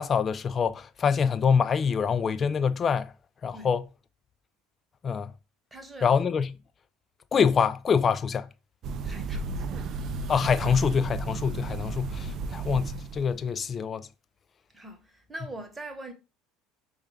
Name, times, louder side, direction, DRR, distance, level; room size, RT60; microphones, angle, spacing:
voice 1, 0.0-3.1 3.4-3.9 5.0-5.3 6.0-6.6 7.3-8.5 10.3-14.1, left 6 dB, 35° left, 0.3 m, -25 dB
voice 2, 5.7-6.1 9.0-9.9 14.7-16.1, right 1 dB, 10° right, 1.0 m, -42 dB
sound 1, 8.8-13.4, right 3 dB, 45° right, 0.4 m, -33 dB
5.3 x 2.4 x 3.2 m
figure-of-eight pair, 65°, 0 cm